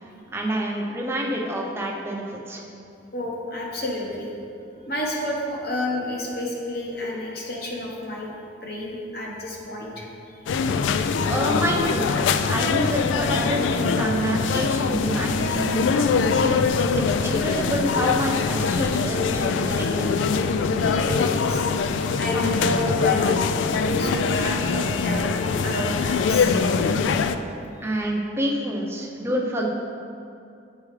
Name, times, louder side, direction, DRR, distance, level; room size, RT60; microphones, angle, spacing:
voice 1, 0.3-2.6 11.2-12.1 12.5-16.4 16.9-20.1 27.8-29.7, right 1 dB, 15° right, -1 dB, 0.6 m, -27 dB
voice 2, 3.1-4.3 4.9-8.4 8.6-10.1 20.8-21.7 22.2-26.6, left 1 dB, 55° left, -2 dB, 1.1 m, -30 dB
sound 1, 10.5-27.4, left 5 dB, 90° left, 0.3 m, -23 dB
8.4 x 4.6 x 3.2 m, 2.6 s
head